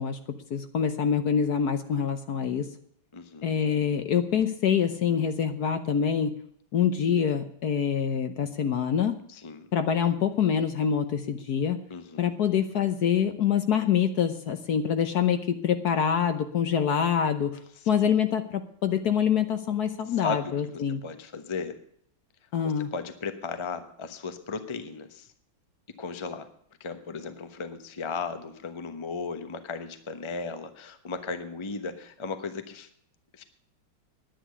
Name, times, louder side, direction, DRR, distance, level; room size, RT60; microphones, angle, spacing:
voice 1, 0.0-2.7 3.4-6.3 6.7-9.2 9.7-11.9 12.2-17.6 17.9-21.0 22.5-22.9, left 8 dB, 60° left, 9 dB, 1.3 m, -25 dB
voice 2, 3.1-3.5 9.3-9.7 11.9-12.4 18.0-18.1 20.1-21.8 22.6-25.3 26.0-26.5 26.8-32.9 33.3-33.4, left 4 dB, 20° left, 9 dB, 0.8 m, -36 dB
10.5 x 10.0 x 8.1 m, 0.67 s
omnidirectional pair, 2.2 m